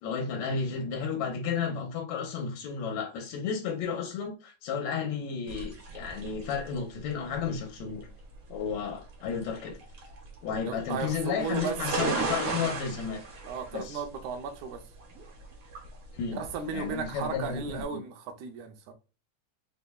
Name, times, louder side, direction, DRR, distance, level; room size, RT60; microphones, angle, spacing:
voice 1, 0.0-8.1 8.5-9.8 10.4-13.2 13.7-14.0 16.1-16.4 16.7-18.0, left 6 dB, 75° left, 2.0 m, -33 dB
sound 1, 5.5-17.8, right 3 dB, 55° right, 1.7 m, -37 dB
voice 2, 10.7-11.8 13.5-14.8 16.3-18.9, right 5 dB, 90° right, 2.0 m, -35 dB
5.1 x 3.3 x 2.2 m
omnidirectional pair, 3.3 m